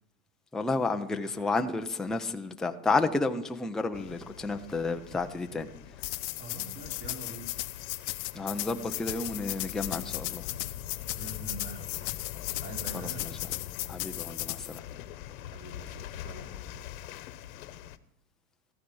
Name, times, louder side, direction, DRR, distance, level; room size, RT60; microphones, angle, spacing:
voice 1, 0.5-5.7 8.3-10.4 12.9-13.4 13.9-14.8, left 3 dB, ahead, 5 dB, 0.5 m, -31 dB
voice 2, 1.2-1.5 6.4-7.5 11.1-12.1 12.6-13.3 15.5-16.5, right 2 dB, 30° right, 1 dB, 3.8 m, -45 dB
sound 1, 3.9-18.0, left 11 dB, 70° left, 1.2 m, -43 dB
sound 2, 6.0-14.8, left 21 dB, 50° left, 0.8 m, -36 dB
14.5 x 13.5 x 5.4 m, 0.79 s
supercardioid pair, 135°, 43 cm